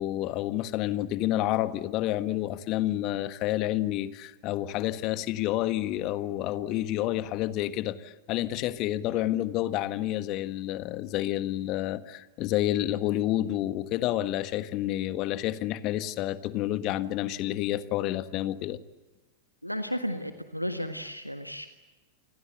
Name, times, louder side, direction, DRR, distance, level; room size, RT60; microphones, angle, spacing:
voice 1, 0.0-18.8, left 14 dB, 40° left, 12 dB, 1.6 m, -29 dB
voice 2, 19.6-21.7, equal, 90° left, 8 dB, 1.6 m, -33 dB
29.5 x 25.0 x 8.1 m, 1.1 s
figure-of-eight pair, 90°, 0 cm